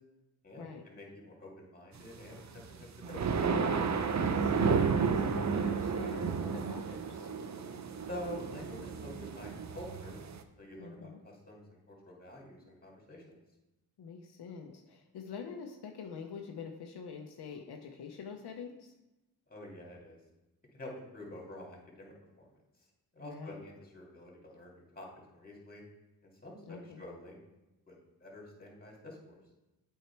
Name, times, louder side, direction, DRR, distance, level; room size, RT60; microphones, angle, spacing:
voice 1, 0.4-2.4 2.7-3.5 8.1-10.2 10.6-11.6 11.9-13.2 19.5-20.2 20.7-22.5 23.1-25.8 26.2-27.4 27.9-29.4, left 1 dB, 25° left, -2 dB, 2.4 m, -47 dB
sound 1, 2.4-10.4, right 5 dB, 45° right, 0.6 m, -32 dB
voice 2, 4.2-7.3 10.8-11.2 14.0-18.9 23.2-23.7 26.7-27.0, left 5 dB, 75° left, 3 dB, 0.8 m, -45 dB
8.2 x 4.6 x 4.5 m, 1.0 s
cardioid pair, 60°, 39 cm